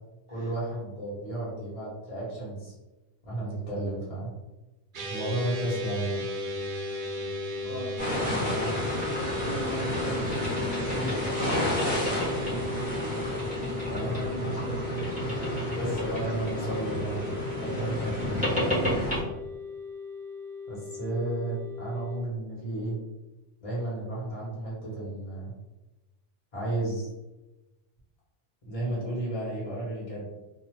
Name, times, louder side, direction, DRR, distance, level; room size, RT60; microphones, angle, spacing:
voice 1, 0.3-2.7 3.3-4.3 5.1-6.3 13.9-14.1 15.8-18.1 20.7-23.0 23.6-25.5 26.5-27.1 28.7-30.3, right 1 dB, 35° left, -7 dB, 1.2 m, -33 dB
sound 1, 4.9-22.2, left 2 dB, 60° right, 0.7 m, -37 dB
voice 2, 7.6-10.5 10.8-13.5 14.1-15.9 17.7-18.3 18.7-19.1, right 3 dB, 65° left, -7 dB, 1.1 m, -39 dB
sound 2, 8.0-19.2, left 1 dB, 10° right, 0.8 m, -30 dB
2.5 x 2.4 x 3.2 m, 1.0 s
omnidirectional pair, 1.1 m